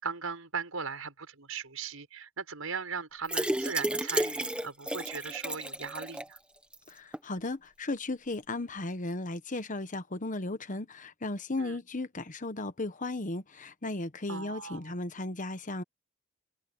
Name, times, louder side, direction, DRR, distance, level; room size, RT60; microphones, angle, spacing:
voice 1, 0.0-6.4 11.6-11.8 14.3-14.9, right 5 dB, 80° right, 6.2 m, -38 dB
sound 1, 3.2-6.4 6.7-6.8 7.1-7.2, right 1 dB, 5° right, 1.2 m, -32 dB
voice 2, 6.9-15.8, left 2 dB, 40° left, 1.2 m, -35 dB
head